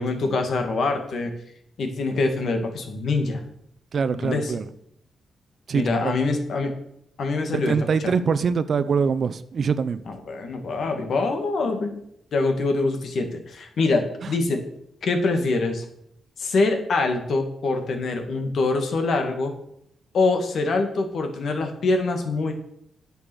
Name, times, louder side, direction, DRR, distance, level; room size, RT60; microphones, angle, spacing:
voice 1, 0.0-1.3 1.8-3.4 4.2-4.5 5.7-6.7 7.2-8.1 10.1-12.0 12.3-14.6 15.0-15.8 16.4-19.5 20.1-22.5, left 3 dB, 65° left, 5 dB, 2.0 m, -24 dB
voice 2, 3.9-4.6 5.7-6.1 7.5-10.0 14.2-14.3, right 5 dB, 50° right, 13 dB, 0.6 m, -24 dB
10.0 x 7.0 x 6.2 m, 0.72 s
cardioid pair, 115°, 0 cm